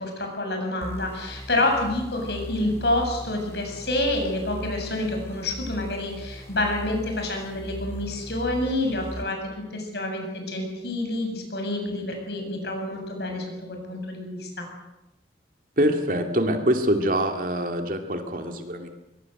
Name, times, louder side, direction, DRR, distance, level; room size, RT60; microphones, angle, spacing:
voice 1, 0.0-14.7, left 1 dB, 70° left, 3 dB, 7.6 m, -28 dB
sound 1, 0.8-9.3, equal, 15° left, 2.8 m, -38 dB
voice 2, 15.8-18.9, right 1 dB, 50° right, 5 dB, 2.5 m, -24 dB
23.5 x 22.0 x 8.0 m, 0.95 s
head